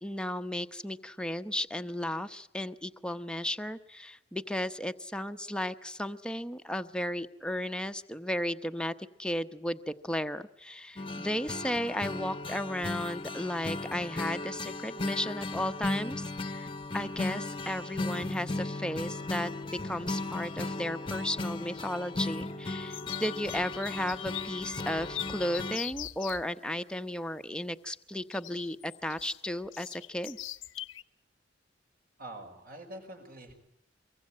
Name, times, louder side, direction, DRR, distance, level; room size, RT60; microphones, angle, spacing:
voice 1, 0.0-19.5 19.8-30.4, left 1 dB, 5° left, 8 dB, 1.0 m, -34 dB
sound 1, 11.0-25.8, left 2 dB, 30° left, 1.0 m, -36 dB
sound 2, 12.6-12.8 13.1-13.7 15.7-15.8 16.4-16.5 16.8-17.2 17.5-18.0 18.6-18.7 19.7-20.2 20.5-26.5 28.3-31.0, left 13 dB, 85° left, 1.0 m, -43 dB
voice 2, 32.2-33.5, right 1 dB, 50° right, 5 dB, 5.7 m, -45 dB
24.5 x 23.5 x 8.9 m, 0.74 s
head